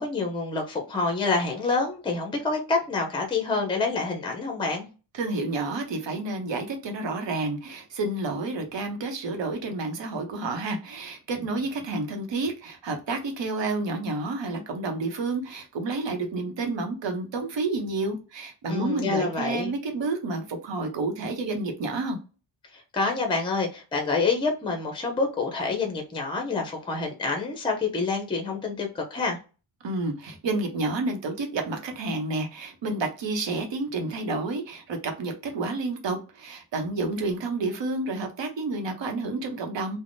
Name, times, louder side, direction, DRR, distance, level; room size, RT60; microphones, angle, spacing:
voice 1, 0.0-4.9 18.7-19.7 22.7-29.4, left 4 dB, 10° left, 2 dB, 0.5 m, -27 dB
voice 2, 5.1-22.2 29.8-40.0, right 3 dB, 70° right, 4 dB, 0.9 m, -30 dB
3.4 x 2.1 x 2.6 m, 0.33 s
wide cardioid pair, 160°, 46 cm